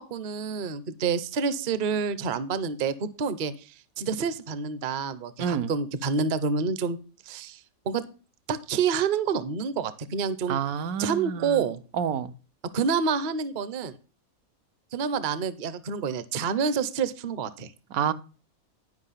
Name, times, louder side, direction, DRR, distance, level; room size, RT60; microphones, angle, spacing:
voice 1, 0.0-3.5 4.0-7.0 7.3-7.6 7.9-8.0 8.5-10.6 11.0-11.8 12.7-13.9 14.9-17.7, right 6 dB, 45° right, 0.7 m, -28 dB
voice 2, 5.4-5.7 10.5-11.6 12.0-12.3 17.9-18.1, right 8 dB, 80° right, 1.2 m, -28 dB
10.5 x 5.5 x 5.6 m
omnidirectional pair, 1.5 m